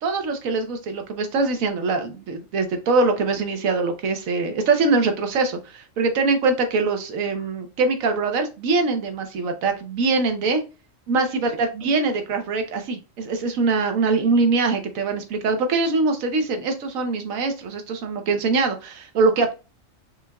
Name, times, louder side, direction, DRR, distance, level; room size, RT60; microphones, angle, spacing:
voice 1, 0.0-10.6 11.1-19.5, right 3 dB, 80° right, 6 dB, 1.3 m, -23 dB
5.7 x 3.3 x 2.2 m, 0.30 s
omnidirectional pair, 1.4 m